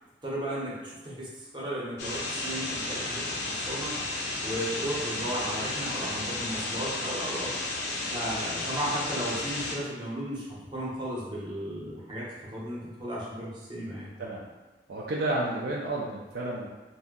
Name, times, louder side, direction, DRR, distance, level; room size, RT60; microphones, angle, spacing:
voice 1, 0.2-4.0 4.4-7.5 8.1-10.5 10.7-14.1, right 1 dB, 25° right, -6 dB, 0.8 m, -35 dB
sound 1, 2.0-9.7, left 2 dB, 65° left, 0.6 m, -33 dB
voice 2, 14.9-16.7, right 2 dB, 60° right, -4 dB, 0.4 m, -31 dB
2.6 x 2.1 x 3.6 m, 1.2 s
head